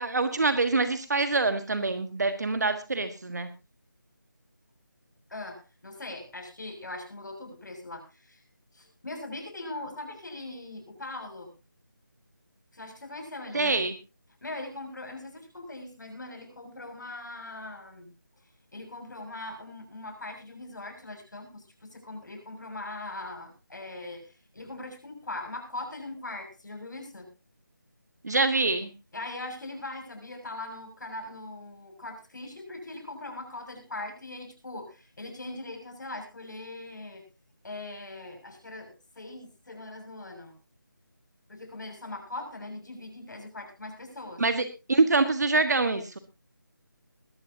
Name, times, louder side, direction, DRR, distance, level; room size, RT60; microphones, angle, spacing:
voice 1, 0.0-3.5 13.5-13.9 28.2-28.9 44.4-46.2, right 3 dB, 55° right, 10 dB, 1.6 m, -25 dB
voice 2, 5.3-8.4 8.7-11.5 12.7-13.8 14.4-18.1 18.7-27.3 29.1-37.2 37.6-40.6 41.5-44.4, left 2 dB, 60° left, 5 dB, 6.5 m, -41 dB
20.5 x 13.0 x 2.8 m, 0.28 s
figure-of-eight pair, 170°, 11 cm